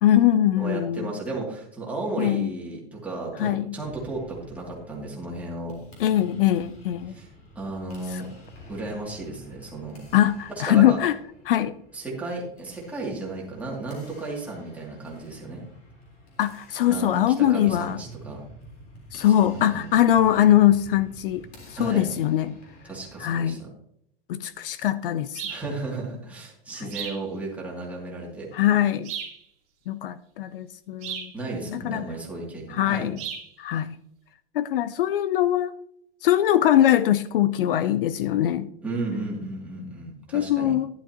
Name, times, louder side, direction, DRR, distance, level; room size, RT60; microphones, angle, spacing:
voice 1, 0.0-1.1 2.2-2.5 3.4-3.8 6.0-7.2 8.1-8.2 10.1-11.2 11.5-11.7 16.4-18.0 19.1-22.6 23.2-23.6 24.3-25.4 26.8-26.9 28.5-29.1 29.9-31.3 31.7-32.0 32.7-33.2 33.6-34.0 34.5-35.7 36.2-38.7 40.3-40.9, left 12 dB, 65° left, 15 dB, 0.6 m, -22 dB
voice 2, 0.6-5.7 7.1-7.3 7.6-8.3 8.7-10.0 10.5-11.0 11.9-15.6 16.9-18.4 19.4-19.9 21.7-22.1 22.8-23.7 25.5-28.5 31.3-33.1 38.8-40.7, right 2 dB, 5° right, -4 dB, 2.5 m, -34 dB
sound 1, 3.8-23.2, equal, 30° left, 3.8 m, -49 dB
sparrow.astray.inside.house, 25.3-25.7 26.9-27.3 29.0-29.4 31.0-31.3 33.2-33.5, right 8 dB, 25° right, 2.5 m, -34 dB
12.0 x 11.5 x 2.9 m, 0.71 s
supercardioid pair, 165°, 29 cm